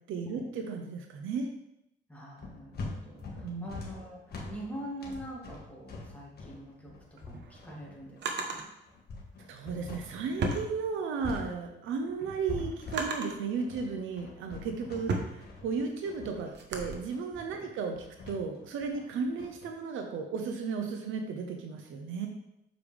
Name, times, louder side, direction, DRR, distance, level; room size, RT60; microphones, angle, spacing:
voice 1, 0.1-1.5 3.4-3.7 9.5-18.0 18.3-22.3, right 5 dB, 85° right, 4 dB, 0.8 m, -34 dB
voice 2, 2.1-8.7 17.5-17.7, equal, 5° left, -4 dB, 2.3 m, -44 dB
sound 1, 2.4-10.7 10.9-19.7, left 3 dB, 55° left, 1.5 m, -43 dB
Drawer open or close, 7.0-8.7 9.7-11.3 11.8-13.5 14.1-16.9, right 4 dB, 60° right, 1.0 m, -37 dB
6.8 x 5.1 x 3.4 m, 0.84 s
cardioid pair, 90°, 20 cm